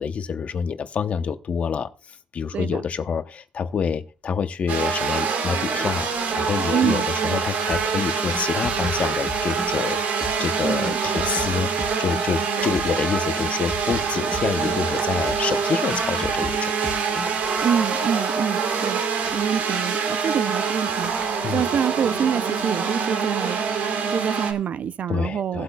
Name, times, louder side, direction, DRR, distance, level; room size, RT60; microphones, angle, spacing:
voice 1, 0.0-16.9 21.4-21.6 25.1-25.6, left 6 dB, 50° left, 0.8 m, -27 dB
sound 1, 3.7-3.9 5.8-6.5 7.8-7.9 8.2-8.5 9.4-10.1 12.5-13.2 14.8-15.7 17.1-18.0 19.1-19.7 20.9-21.5, right 2 dB, 30° right, 1.4 m, -40 dB
sound 2, 4.7-24.5, right 6 dB, 80° right, 1.6 m, -25 dB
voice 2, 6.7-7.4 10.6-11.0 12.6-12.7 17.6-19.0 19.3-21.2 21.5-23.6 24.1-25.6, right 8 dB, 60° right, 0.5 m, -26 dB
sound 3, 7.7-9.9 10.2-12.5 12.7-13.1 13.4-15.0 15.3-15.6 15.9-17.5, left 2 dB, 15° left, 1.0 m, -35 dB
17.5 x 8.1 x 2.3 m
cardioid pair, 100°, 3 cm